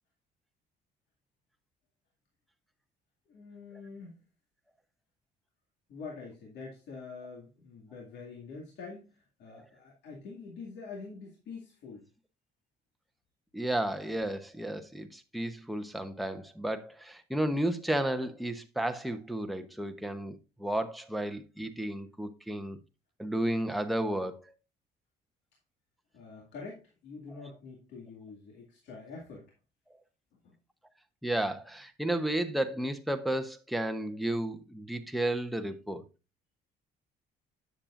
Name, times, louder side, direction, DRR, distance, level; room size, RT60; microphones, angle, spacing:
voice 1, 3.3-4.2 5.9-9.1 9.4-12.1 26.1-29.5 30.3-30.5, left 4 dB, 75° left, 2.2 m, -45 dB
voice 2, 13.5-22.8 23.2-24.5 31.2-36.0, right 1 dB, ahead, 0.9 m, -33 dB
9.7 x 7.3 x 2.5 m
cardioid pair, 95°, 18 cm